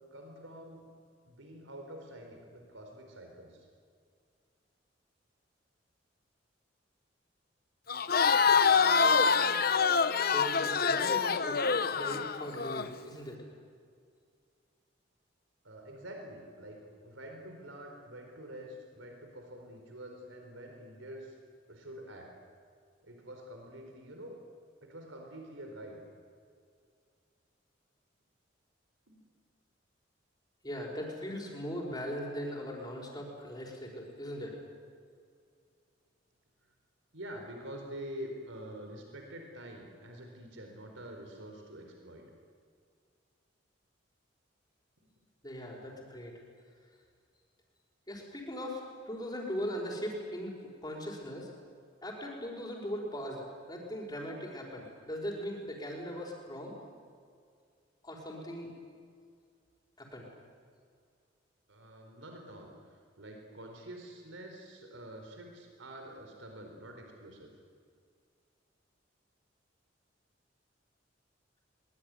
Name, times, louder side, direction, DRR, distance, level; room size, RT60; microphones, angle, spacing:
voice 1, 0.1-0.9 1.2-3.7 15.6-21.4 21.7-22.3 23.0-24.4 24.8-26.0 29.1-29.2 36.6-36.7 37.1-42.2 45.0-45.1 61.7-67.5, right 1 dB, 90° right, 3 dB, 4.4 m, -47 dB
Crowd, 7.9-12.9, left 5 dB, 50° left, 1.0 m, -26 dB
voice 2, 10.2-13.4 30.6-34.6 45.4-46.3 48.1-50.5 50.8-51.5 52.0-56.8 58.0-58.7 60.0-60.3, equal, 20° left, 0 dB, 5.2 m, -39 dB
23.0 x 21.5 x 9.7 m, 2.2 s
head